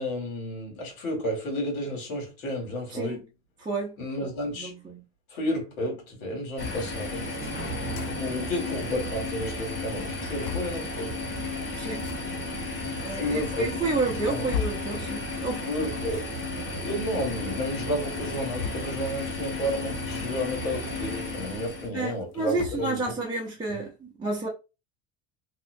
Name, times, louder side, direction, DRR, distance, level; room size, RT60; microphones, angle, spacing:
voice 1, 0.0-3.2 4.0-4.7 5.3-7.3 8.1-11.2 13.2-13.7 14.1-14.5 15.7-16.3 16.8-23.1, equal, 80° left, 2.0 m, -31 dB
voice 2, 3.6-3.9 4.2-5.0 11.8-12.1 13.0-15.7 16.5-16.9 21.9-24.5, right 3 dB, 10° right, 0.6 m, -31 dB
sound 1, 6.6-6.8 7.7-8.1 8.5-8.6 8.8-8.9 9.5-9.6 9.9-10.8 11.9-12.2 13.0-13.1 13.8-14.9 16.1-16.3 18.1-19.1 20.1-20.3 20.6-20.7 22.0-22.9, left 7 dB, 50° left, 0.5 m, -36 dB
sound 2, 6.6-21.9, left 2 dB, 30° left, 1.7 m, -33 dB
3.0 x 2.8 x 2.6 m
supercardioid pair, 110°, 41 cm